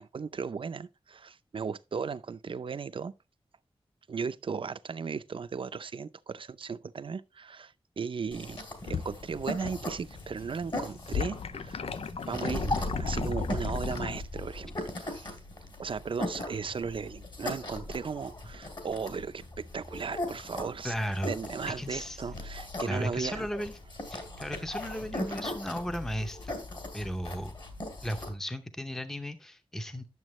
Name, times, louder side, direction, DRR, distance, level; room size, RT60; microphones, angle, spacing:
voice 1, 0.0-3.1 4.1-8.6 8.8-11.8 12.3-15.4 15.8-20.9 21.2-23.5, right 5 dB, 60° right, 0.5 m, -36 dB
sound 1, 8.3-9.9 10.2-14.2, left 6 dB, 90° left, 0.5 m, -37 dB
sound 2, 8.3-28.3, left 1 dB, 50° left, 2.8 m, -39 dB
Explosion, 9.2-14.8, left 2 dB, 75° left, 4.2 m, -38 dB
voice 2, 20.8-21.4 21.7-22.3 22.8-23.8 24.1-26.5 26.9-27.5 28.0-30.1, equal, 5° left, 0.7 m, -35 dB
11.0 x 7.1 x 3.1 m
wide cardioid pair, 115°, 10 cm